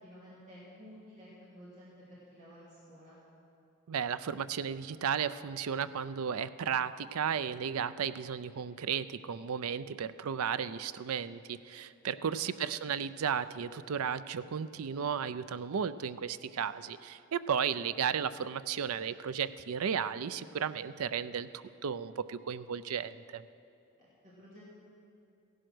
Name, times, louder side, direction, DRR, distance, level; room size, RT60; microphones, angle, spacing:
voice 1, 0.0-3.2 12.2-12.6 24.0-24.6, equal, 35° right, -8 dB, 2.8 m, -53 dB
voice 2, 3.9-23.4, right 7 dB, 80° right, 14 dB, 0.5 m, -34 dB
15.5 x 11.0 x 6.2 m, 2.5 s
head